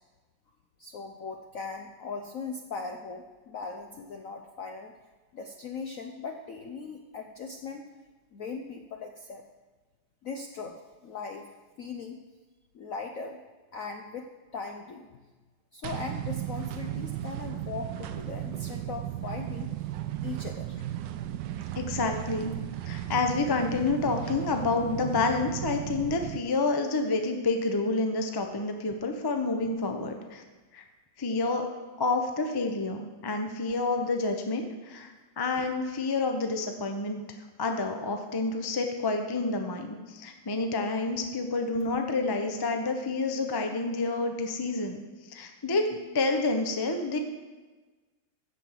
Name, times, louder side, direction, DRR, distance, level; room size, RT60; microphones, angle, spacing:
voice 1, 0.8-4.9 5.3-7.8 8.3-9.4 10.2-11.5 11.8-12.2 12.7-13.4 13.7-15.1 15.7-19.9 20.2-20.8, left 4 dB, 60° left, 4 dB, 0.8 m, -39 dB
sound 1, 15.8-26.4, right 12 dB, 75° right, 1.2 m, -35 dB
voice 2, 21.7-22.5 22.8-30.4 30.7-30.8 31.2-31.7 32.0-37.2 37.6-45.0 45.3-47.2, left 3 dB, 25° left, 5 dB, 0.5 m, -29 dB
15.0 x 5.4 x 7.5 m, 1.3 s
omnidirectional pair, 2.2 m